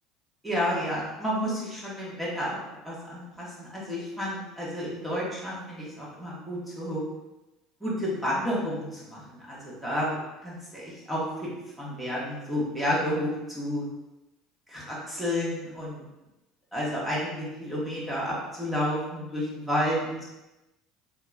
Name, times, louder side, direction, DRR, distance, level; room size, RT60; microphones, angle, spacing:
voice 1, 0.4-2.6 2.8-7.0 7.8-11.2 11.8-13.8 14.7-16.0 16.7-20.2, equal, 5° right, -7 dB, 1.4 m, -31 dB
3.7 x 2.8 x 2.4 m, 0.97 s
supercardioid pair, 90°, 0 cm